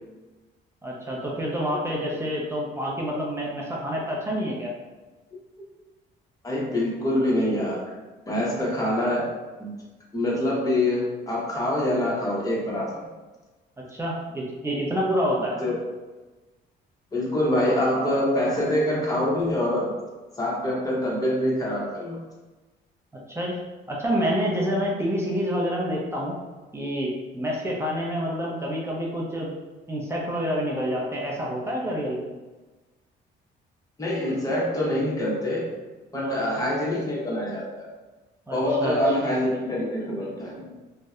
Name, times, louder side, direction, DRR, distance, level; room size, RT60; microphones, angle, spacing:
voice 1, 0.8-4.7 13.8-15.6 23.3-23.6 23.9-26.4 26.7-29.5 29.9-32.3 36.1-36.4 38.5-39.0 39.2-39.3, equal, 15° right, -3 dB, 0.5 m, -28 dB
voice 2, 6.4-7.9 8.3-9.3 9.6-9.7 10.1-13.0 15.6-15.8 17.1-19.9 20.4-22.2 34.0-35.7 36.1-37.9 38.5-40.8, left 1 dB, 20° left, -5 dB, 0.8 m, -25 dB
2.6 x 2.1 x 2.3 m, 1.2 s
cardioid pair, 90°, 20 cm